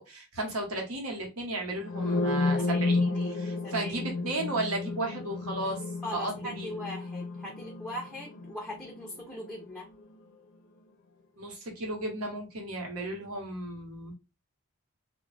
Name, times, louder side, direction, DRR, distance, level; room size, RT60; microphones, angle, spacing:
voice 1, 0.0-5.8 6.1-6.7 11.4-14.1, right 2 dB, 80° right, 1.0 m, -34 dB
sound 1, 1.8-9.6, left 3 dB, 60° left, 0.4 m, -32 dB
voice 2, 2.6-4.2 6.0-9.9, left 1 dB, ahead, 0.4 m, -41 dB
2.2 x 2.1 x 3.2 m
head